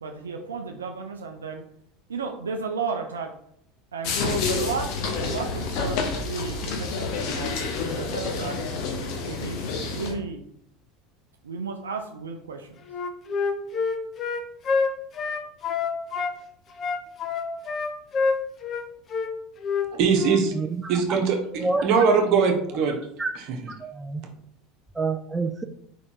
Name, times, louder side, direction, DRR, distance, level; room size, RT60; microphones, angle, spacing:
voice 1, 0.0-1.6 2.1-3.3 3.9-7.6 7.9-8.6 9.3-10.4 11.4-12.8, right 4 dB, 80° right, 3 dB, 0.5 m, -33 dB
sound 1, 4.0-10.1, left 4 dB, 55° left, 1.0 m, -29 dB
Wind instrument woodwind instrument, 12.9-16.3 16.8-18.8 19.1-19.3 19.6-19.9 20.2-20.4, left 5 dB, 35° left, 0.8 m, -26 dB
voice 2, 19.9-20.5 20.9-23.0 23.3-23.4, right 5 dB, 55° right, 2 dB, 1.2 m, -21 dB
voice 3, 23.8-24.2 25.0-25.6, right 3 dB, 10° right, 7 dB, 0.5 m, -27 dB
5.0 x 4.2 x 4.6 m, 0.70 s
figure-of-eight pair, 75°, 0 cm